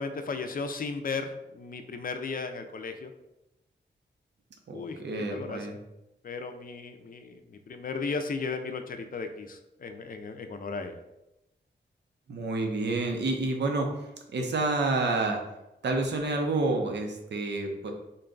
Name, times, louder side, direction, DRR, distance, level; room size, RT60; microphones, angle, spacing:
voice 1, 0.0-3.1 4.7-5.0 5.3-5.7 6.2-11.0, left 4 dB, 50° left, 7 dB, 0.5 m, -35 dB
voice 2, 4.7-5.8 12.3-14.1 14.3-15.4 15.8-17.9, right 2 dB, 65° right, 3 dB, 0.7 m, -29 dB
3.8 x 2.2 x 3.8 m, 0.92 s
cardioid pair, 75°, 19 cm